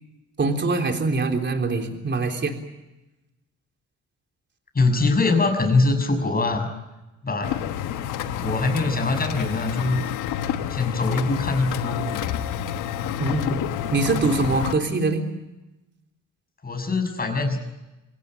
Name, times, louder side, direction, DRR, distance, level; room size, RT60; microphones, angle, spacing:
voice 1, 0.4-2.5 13.2-13.6 13.9-15.3, right 3 dB, 35° right, 4 dB, 3.7 m, -23 dB
voice 2, 4.7-6.7 7.2-7.5 8.4-10.0 10.7-12.0 16.6-17.6, left 3 dB, 30° left, 6 dB, 6.4 m, -22 dB
sound 1, 7.4-14.7, left 9 dB, 85° left, 1.4 m, -29 dB
26.0 x 18.0 x 9.0 m, 1.0 s
cardioid pair, 90°, 30 cm